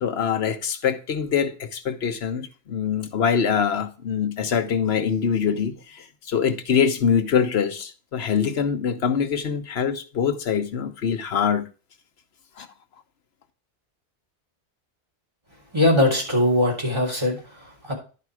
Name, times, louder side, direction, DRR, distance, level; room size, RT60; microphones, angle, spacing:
voice 1, 0.0-11.7 12.6-12.7, left 7 dB, 65° left, 1.1 m, -24 dB
voice 2, 15.7-17.9, left 1 dB, 25° right, 3.7 m, -21 dB
11.0 x 5.0 x 4.7 m
omnidirectional pair, 1.2 m